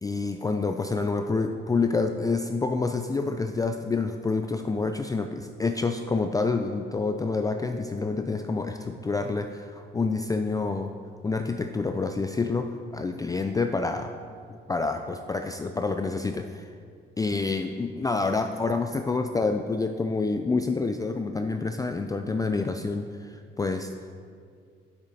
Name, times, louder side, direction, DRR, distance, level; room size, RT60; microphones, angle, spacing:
voice 1, 0.0-10.9 11.2-14.1 14.7-16.7 17.2-23.9, left 3 dB, 20° left, 6 dB, 0.4 m, -28 dB
8.6 x 6.3 x 4.1 m, 2.1 s
cardioid pair, 90°, 20 cm